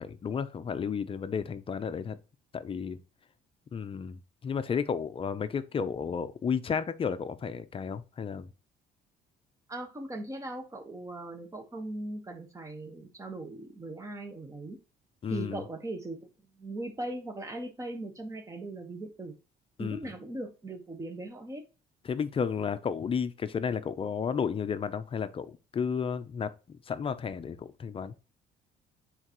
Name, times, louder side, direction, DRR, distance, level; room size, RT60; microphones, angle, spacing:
voice 1, 0.0-2.2 2.5-3.0 3.7-8.5 15.2-15.6 19.8-20.1 22.0-28.1, left 6 dB, 35° left, 0.6 m, -32 dB
voice 2, 9.7-14.8 15.3-16.3 16.6-19.4 19.8-21.6, right 2 dB, 20° right, 1.3 m, -39 dB
8.8 x 4.0 x 3.0 m
cardioid pair, 110°, 17 cm